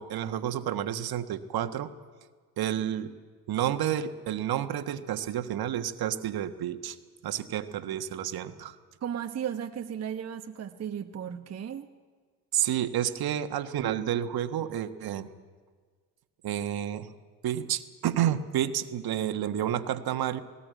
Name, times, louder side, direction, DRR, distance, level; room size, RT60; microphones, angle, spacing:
voice 1, 0.0-1.9 2.6-3.1 3.5-7.0 7.2-8.7 12.5-15.3 16.4-17.1 17.4-20.4, right 11 dB, 50° right, 9 dB, 1.4 m, -30 dB
voice 2, 9.0-11.9, right 9 dB, 35° right, 5 dB, 1.0 m, -35 dB
19.0 x 18.5 x 9.3 m, 1.6 s
hypercardioid pair, 65°, 47 cm